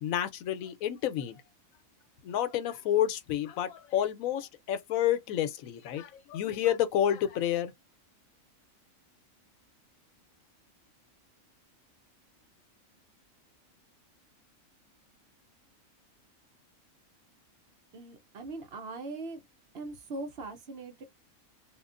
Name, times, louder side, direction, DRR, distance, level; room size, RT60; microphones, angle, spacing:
voice 1, 0.0-1.4 2.2-7.7, left 11 dB, 80° left, 1.0 m, -29 dB
voice 2, 17.9-19.4 19.7-21.0, right 2 dB, 55° right, 0.9 m, -40 dB
2.9 x 2.4 x 2.4 m
omnidirectional pair, 1.4 m